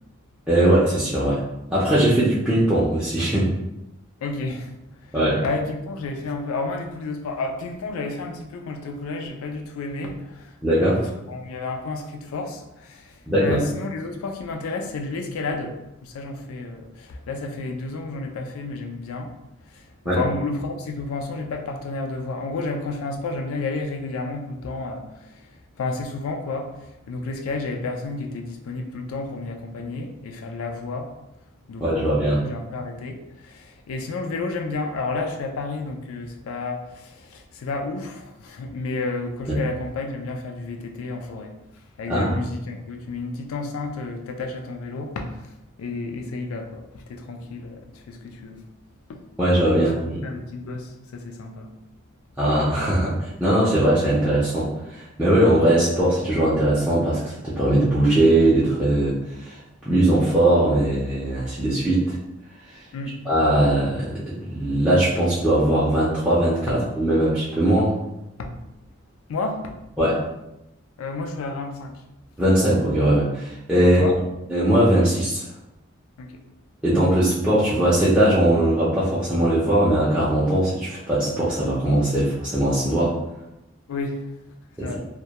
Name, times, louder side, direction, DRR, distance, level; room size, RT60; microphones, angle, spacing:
voice 1, 0.5-1.4 1.7-3.5 5.1-5.4 10.6-11.0 13.3-13.6 20.0-20.2 31.8-32.4 39.5-39.6 42.1-42.3 49.4-50.2 52.4-59.6 59.9-62.2 63.3-67.9 70.0-70.2 72.4-74.0 74.5-75.4 76.8-83.2 84.8-84.9, right 1 dB, 5° right, -10 dB, 0.4 m, -20 dB
voice 2, 4.2-4.7 5.4-13.1 13.4-15.7 16.0-19.3 19.7-19.8 20.1-25.4 25.8-26.7 27.1-31.1 31.7-41.5 42.0-45.3 45.8-48.6 49.1-49.2 49.8-51.7 62.9-63.2 68.4-68.6 69.3-69.7 71.0-72.0 73.8-74.2 76.2-76.3 83.9-84.2 84.8-85.0, left 3 dB, 80° left, 4 dB, 0.4 m, -31 dB
2.2 x 2.1 x 2.8 m, 0.89 s
head